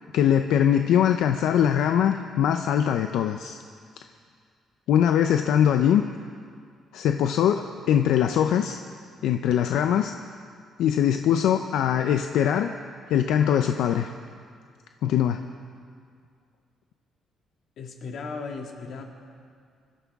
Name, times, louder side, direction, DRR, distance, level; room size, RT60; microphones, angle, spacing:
voice 1, 0.1-3.6 4.9-6.0 6.9-8.8 9.2-10.1 10.8-12.7 13.1-14.1 15.0-15.4, left 9 dB, 85° left, 6 dB, 0.5 m, -22 dB
voice 2, 17.8-19.0, left 4 dB, 60° left, 2 dB, 2.0 m, -36 dB
26.0 x 12.5 x 3.6 m, 2.2 s
cardioid pair, 145°, 0 cm